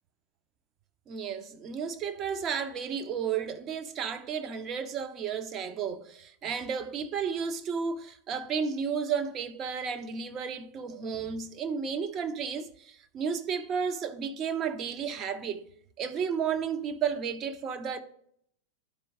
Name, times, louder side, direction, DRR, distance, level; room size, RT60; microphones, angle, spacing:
voice 1, 1.1-15.6 16.0-18.0, right 6 dB, 30° right, 0.7 m, -33 dB
11.0 x 4.5 x 3.6 m
figure-of-eight pair, 90°, 0 cm